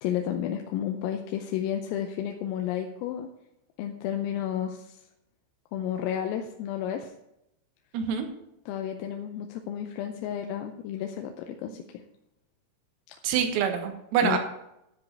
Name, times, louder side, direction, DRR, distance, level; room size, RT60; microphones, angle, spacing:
voice 1, 0.0-3.3 3.8-5.1 5.7-7.1 8.7-12.0 13.1-13.2 14.2-14.4, left 10 dB, 85° left, 4 dB, 3.4 m, -32 dB
voice 2, 7.9-8.3 13.2-14.4, right 8 dB, 85° right, 5 dB, 4.0 m, -25 dB
13.0 x 5.2 x 8.3 m, 0.84 s
omnidirectional pair, 6.0 m